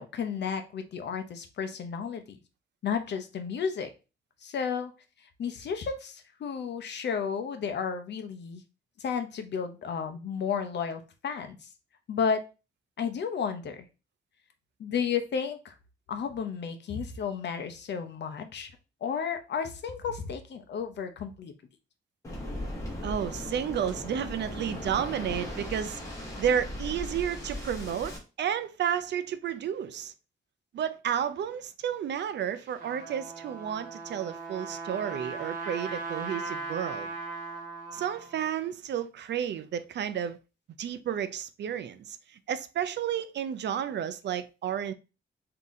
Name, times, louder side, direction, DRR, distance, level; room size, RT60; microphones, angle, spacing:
voice 1, 0.0-2.4 2.8-3.9 4.4-4.9 5.4-8.6 9.0-11.7 12.1-12.5 13.0-13.8 14.8-15.7 16.1-18.7 19.0-21.5, left 6 dB, 60° left, 0.7 m, -32 dB
Waves surf, 22.2-28.2, left 1 dB, 15° left, 1.2 m, -37 dB
voice 2, 23.0-26.0 26.4-30.1 30.7-37.1 37.9-40.4 40.8-42.2 42.5-44.9, right 9 dB, 60° right, 0.4 m, -31 dB
Trumpet, 32.5-38.5, right 3 dB, 40° right, 1.4 m, -38 dB
4.0 x 2.8 x 3.6 m
wide cardioid pair, 165°, 20 cm